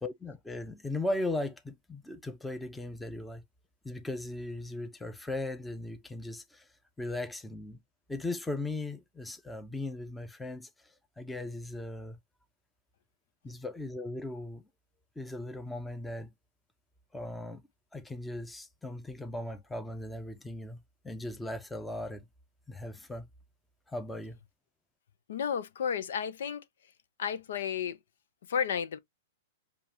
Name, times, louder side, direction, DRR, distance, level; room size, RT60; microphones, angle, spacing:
voice 1, 0.0-3.4 3.8-6.6 7.0-7.8 8.1-10.7 11.2-12.2 13.4-14.6 15.2-16.3 17.1-17.6 17.9-20.8 21.0-22.3 22.7-23.3 23.9-24.4, left 2 dB, 5° left, 0.6 m, -37 dB
voice 2, 25.3-26.6 27.2-28.0 28.5-29.0, left 7 dB, 75° left, 0.6 m, -32 dB
6.9 x 2.4 x 2.8 m
hypercardioid pair, 145°, 0 cm